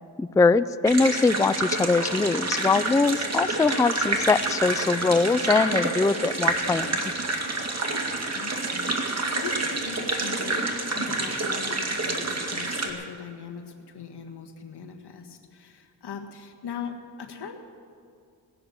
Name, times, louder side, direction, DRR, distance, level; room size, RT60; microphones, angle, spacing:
voice 1, 0.2-7.0, left 4 dB, 10° left, 15 dB, 0.3 m, -22 dB
sound 1, 0.8-12.9, right 2 dB, 40° right, 2.0 m, -28 dB
voice 2, 7.8-17.6, left 6 dB, 80° left, 4 dB, 1.6 m, -40 dB
19.5 x 6.8 x 8.6 m, 2.3 s
cardioid pair, 65°, 40 cm